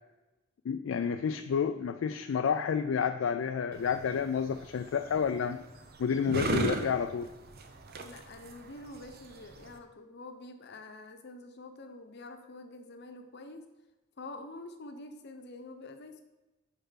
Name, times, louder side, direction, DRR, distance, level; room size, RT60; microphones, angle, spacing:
voice 1, 0.6-5.6 6.0-7.3, left 6 dB, 70° left, 7 dB, 0.3 m, -30 dB
sound 1, 3.7-9.8, right 2 dB, 50° right, 0.7 m, -37 dB
voice 2, 8.0-13.7 14.2-16.2, left 2 dB, 55° left, 6 dB, 0.8 m, -47 dB
6.8 x 4.5 x 5.7 m, 1.0 s
head